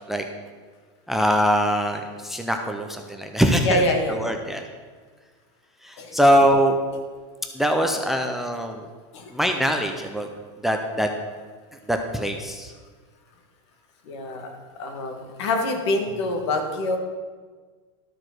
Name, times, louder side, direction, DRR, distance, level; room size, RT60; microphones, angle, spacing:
voice 1, 1.1-4.6 5.8-6.8 7.5-8.9 9.3-10.3 10.6-11.1 11.9-12.7, equal, ahead, 4 dB, 0.4 m, -22 dB
voice 2, 3.6-4.2 6.0-6.2 9.1-9.3 14.0-14.5 14.8-17.0, left 2 dB, 70° left, 4 dB, 1.7 m, -25 dB
12.5 x 4.9 x 5.9 m, 1.5 s
supercardioid pair, 165°, 15 cm